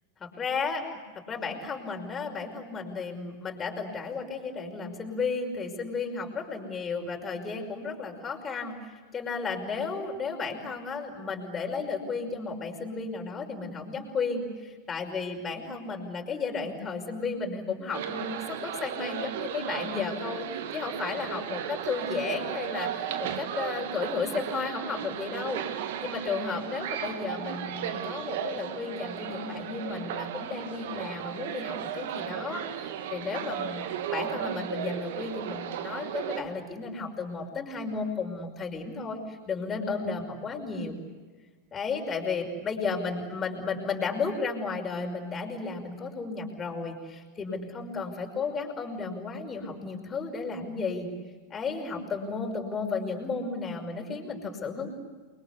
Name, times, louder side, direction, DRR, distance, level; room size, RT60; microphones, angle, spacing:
voice 1, 0.2-0.8 1.1-41.0 41.7-51.1 51.5-54.9, left 4 dB, 20° left, 2 dB, 5.6 m, -33 dB
sound 1, 17.9-36.4, right 9 dB, 55° right, 2.0 m, -35 dB
29.5 x 23.5 x 8.4 m, 1.4 s
figure-of-eight pair, 90°, 0 cm